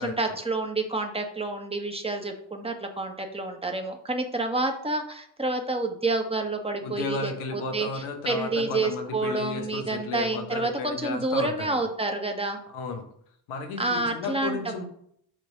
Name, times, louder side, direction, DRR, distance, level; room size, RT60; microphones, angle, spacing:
voice 1, 0.0-12.6 13.8-14.6, right 2 dB, 10° right, 4 dB, 1.5 m, -29 dB
voice 2, 6.8-11.8 12.7-13.1 13.5-14.8, left 4 dB, 85° left, 4 dB, 1.2 m, -33 dB
7.7 x 3.2 x 5.4 m, 0.67 s
hypercardioid pair, 45°, 50 cm